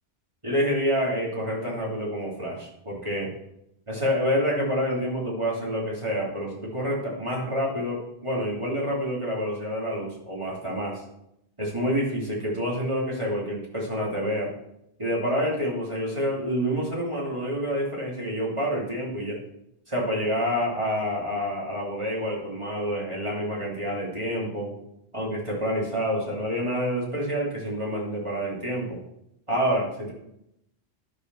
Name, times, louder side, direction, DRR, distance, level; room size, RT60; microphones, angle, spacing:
voice 1, 0.4-3.3 3.9-11.0 11.6-14.5 15.0-19.4 19.9-24.8 25.1-29.0 29.5-30.1, equal, 25° right, -4 dB, 3.2 m, -28 dB
11.5 x 4.9 x 6.2 m, 0.80 s
omnidirectional pair, 1.2 m